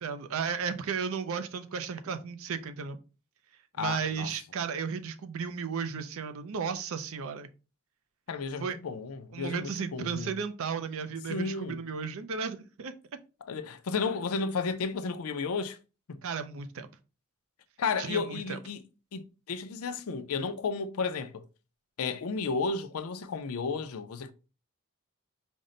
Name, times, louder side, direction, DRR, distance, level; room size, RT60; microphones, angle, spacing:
voice 1, 0.0-3.0 3.8-7.5 8.6-8.8 9.3-12.9 16.2-16.9 18.0-18.6, right 6 dB, 65° right, 0.5 m, -34 dB
voice 2, 3.8-4.3 8.3-10.3 11.3-11.8 13.5-15.8 16.1-16.2 17.8-18.8 19.1-21.4 22.0-24.3, left 4 dB, 75° left, 0.5 m, -33 dB
5.2 x 2.1 x 3.8 m
head